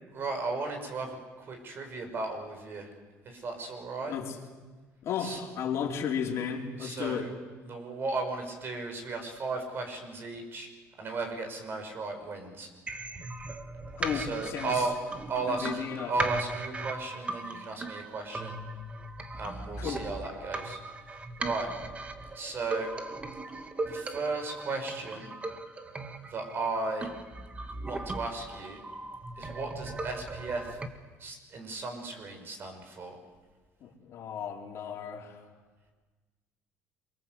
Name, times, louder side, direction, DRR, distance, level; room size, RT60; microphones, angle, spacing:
voice 1, 0.1-2.9 3.2-4.2 5.2-5.4 6.8-7.3 7.6-10.7 11.0-12.7 14.1-15.0 15.3-18.6 19.3-20.8 21.4-21.7 22.3-22.9 23.9-25.3 26.3-27.1 27.9-28.8 29.4-30.8 31.2-33.2, right 3 dB, 45° right, 5 dB, 6.3 m, -35 dB
voice 2, 5.0-7.3 14.0-14.9 15.5-16.1 19.8-20.0 33.8-35.4, left 7 dB, 55° left, 0 dB, 4.5 m, -34 dB
sound 1, 12.9-30.9, right 2 dB, 20° right, 2.0 m, -38 dB
27.5 x 23.5 x 8.0 m, 1.3 s
cardioid pair, 110°, 6 cm